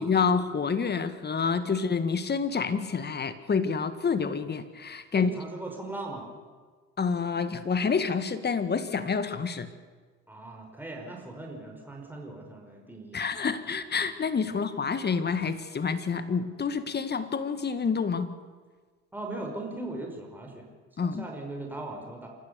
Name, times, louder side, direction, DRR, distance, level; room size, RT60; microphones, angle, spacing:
voice 1, 0.0-5.3 7.0-9.7 13.1-18.4 21.0-21.3, left 5 dB, 30° left, 11 dB, 1.8 m, -28 dB
voice 2, 5.1-6.3 10.3-13.5 14.5-14.6 19.1-20.7 21.0-22.3, right 2 dB, 5° right, 0 dB, 5.4 m, -39 dB
28.0 x 15.0 x 7.0 m, 1.5 s
hypercardioid pair, 65°, 33 cm